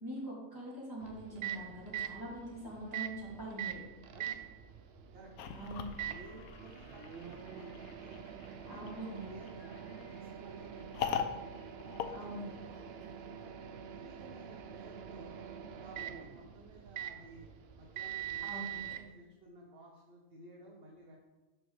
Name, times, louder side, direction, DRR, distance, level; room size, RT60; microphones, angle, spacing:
voice 1, 0.0-3.8 5.5-5.8 8.7-9.3 12.1-12.4 18.4-18.8, right 1 dB, 15° right, -7 dB, 2.5 m, -43 dB
Microwave oven, 1.0-19.0, right 9 dB, 65° right, 0.6 m, -44 dB
sound 1, 5.4-13.0, left 8 dB, 90° left, 1.1 m, -42 dB
voice 2, 6.0-11.4 11.8-15.4 15.7-17.5 17.8-21.2, right 1 dB, 45° right, -2 dB, 1.1 m, -55 dB
11.0 x 4.6 x 3.2 m, 1.1 s
omnidirectional pair, 1.5 m